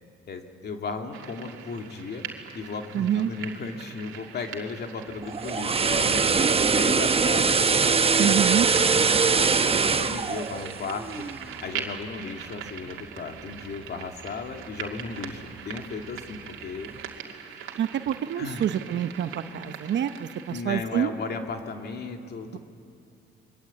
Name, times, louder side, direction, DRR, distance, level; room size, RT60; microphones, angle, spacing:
voice 1, 0.3-2.3 2.5-7.6 8.0-11.1 11.6-16.9 17.3-17.8 18.4-18.7 20.5-22.6, left 4 dB, 55° left, 4 dB, 2.4 m, -36 dB
sound 1, 1.1-20.6, right 8 dB, 90° right, 2.3 m, -42 dB
voice 2, 2.9-3.3 8.2-8.7 17.8-21.1, right 10 dB, 65° right, 10 dB, 0.9 m, -27 dB
sound 2, 5.2-11.4 11.8-12.0, right 5 dB, 30° right, 0.9 m, -22 dB
28.5 x 22.5 x 8.5 m, 2.5 s
cardioid pair, 90°, 20 cm